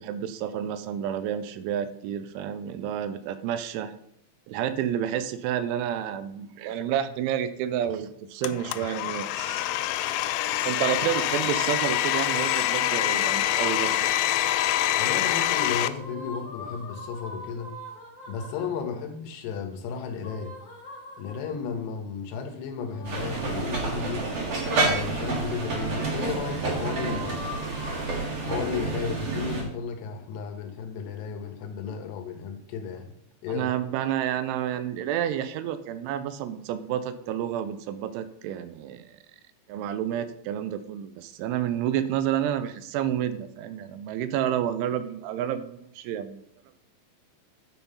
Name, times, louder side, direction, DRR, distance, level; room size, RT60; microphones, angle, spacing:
voice 1, 0.0-4.0 4.5-9.7 10.7-14.1 33.5-39.2 39.7-46.4, right 10 dB, 85° right, 12 dB, 3.0 m, -30 dB
Domestic sounds home sounds, 8.4-15.9, left 14 dB, 90° left, 3.0 m, -25 dB
sound 1, 14.6-18.8 20.2-21.7 22.8-24.5 25.6-28.2, left 1 dB, 50° left, 2.1 m, -43 dB
voice 2, 15.0-17.7 18.3-20.5 21.2-24.3 24.8-27.7 28.4-33.1 33.4-33.7, left 6 dB, 70° left, 5 dB, 3.0 m, -34 dB
sound 2, 23.0-29.6, right 3 dB, 45° right, 2.3 m, -29 dB
10.5 x 5.6 x 5.5 m, 0.74 s
omnidirectional pair, 5.5 m